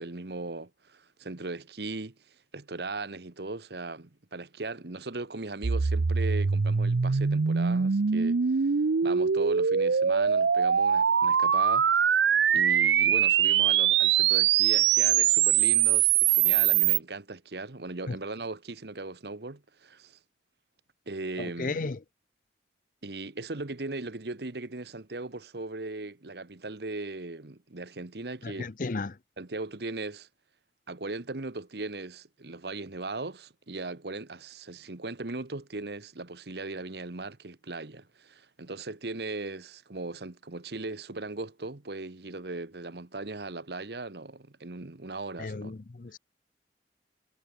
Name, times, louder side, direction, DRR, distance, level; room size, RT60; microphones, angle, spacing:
voice 1, 0.0-8.7 9.0-20.2 21.1-21.9 23.0-28.7 29.4-30.3 30.9-45.7, right 3 dB, 65° right, 1.2 m, -38 dB
sound 1, 5.6-17.0, right 8 dB, 90° right, 0.6 m, -23 dB
voice 2, 21.4-22.0 28.4-29.2 45.4-46.2, left 3 dB, 50° left, 0.6 m, -34 dB
head